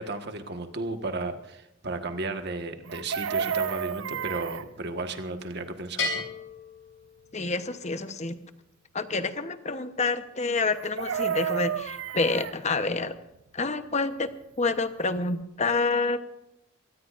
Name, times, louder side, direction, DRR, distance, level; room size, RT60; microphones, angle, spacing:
voice 1, 0.0-6.2, right 2 dB, 55° right, 6 dB, 1.5 m, -34 dB
Chicken rooster, 2.9-4.7 10.7-12.6 14.8-14.9 15.2-15.4, right 7 dB, 75° right, 0.5 m, -31 dB
Bell, 6.0-7.7, left 3 dB, 75° left, 7.4 m, -34 dB
voice 2, 7.3-8.4 8.9-13.1 13.5-14.3 14.6-16.2, left 3 dB, 35° left, 10 dB, 1.0 m, -28 dB
24.0 x 18.5 x 2.6 m, 0.90 s
head